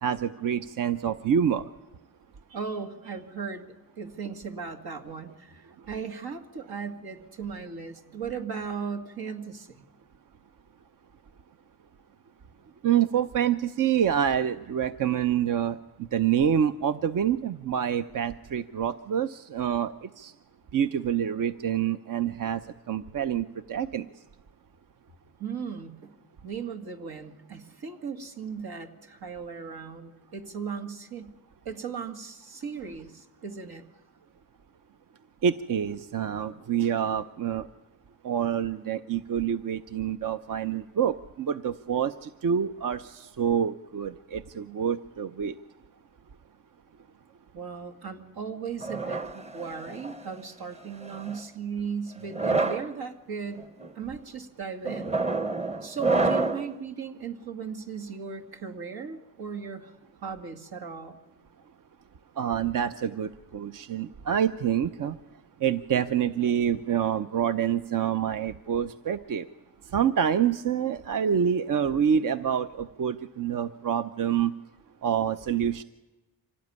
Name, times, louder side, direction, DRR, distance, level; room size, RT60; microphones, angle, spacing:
voice 1, 0.0-1.7 12.8-20.3 20.7-22.6 22.9-24.1 35.4-37.7 38.2-45.6 62.4-65.2 65.6-69.5 69.8-74.5 75.0-75.8, right 8 dB, 60° right, 11 dB, 0.7 m, -27 dB
voice 2, 2.5-9.8 25.4-26.1 26.4-31.3 31.6-33.9 47.5-53.6 53.9-55.2 55.8-59.9 60.2-61.2, right 6 dB, 85° right, 5 dB, 2.3 m, -37 dB
sound 1, 48.8-50.2 51.0-51.4 52.2-52.9 53.6-53.9 54.8-56.7, right 3 dB, 20° right, 0.9 m, -28 dB
25.5 x 17.5 x 9.6 m, 1.1 s
cardioid pair, 105°, 36 cm